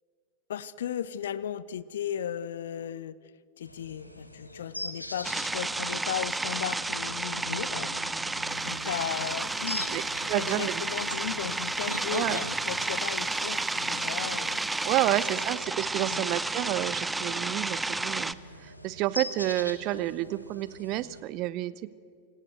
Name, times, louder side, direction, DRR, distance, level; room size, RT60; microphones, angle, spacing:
voice 1, 0.5-3.2 3.6-8.0 8.6-9.9 10.3-14.6 15.3-15.4 16.1-16.2, left 9 dB, 60° left, 20 dB, 0.7 m, -36 dB
sound 1, 3.6-21.2, left 1 dB, 85° left, 1.7 m, -43 dB
sound 2, 5.2-18.3, right 2 dB, 10° right, 0.6 m, -31 dB
voice 2, 10.3-10.7 12.1-12.4 14.8-18.3 18.6-21.9, right 16 dB, 40° right, 18 dB, 0.8 m, -30 dB
26.0 x 18.0 x 7.8 m, 2.2 s
figure-of-eight pair, 90°, 0 cm